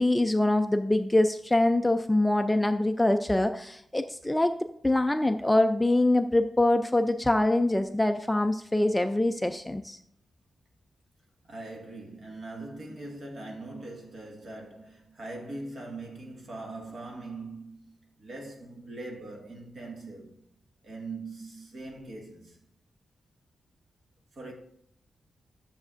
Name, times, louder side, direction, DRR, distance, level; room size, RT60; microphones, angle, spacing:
voice 1, 0.0-10.0, left 1 dB, 10° left, 0.3 m, -24 dB
voice 2, 11.4-20.4 20.8-22.6 24.3-24.5, right 2 dB, 50° right, 1.9 m, -41 dB
13.0 x 7.1 x 2.5 m
wide cardioid pair, 140°, 0 cm